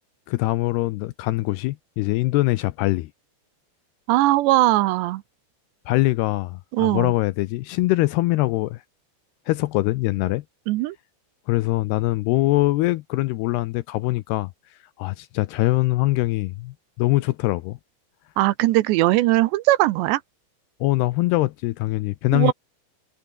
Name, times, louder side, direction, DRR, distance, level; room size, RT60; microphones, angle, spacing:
voice 1, 0.3-3.1 5.9-8.8 9.5-10.4 11.5-14.5 15.0-17.8 20.8-22.5, left 19 dB, 80° left, 2.4 m, -23 dB
voice 2, 4.1-5.2 6.7-7.1 10.7-11.0 18.4-20.2 22.3-22.5, right 17 dB, 80° right, 2.9 m, -19 dB
omnidirectional pair, 5.3 m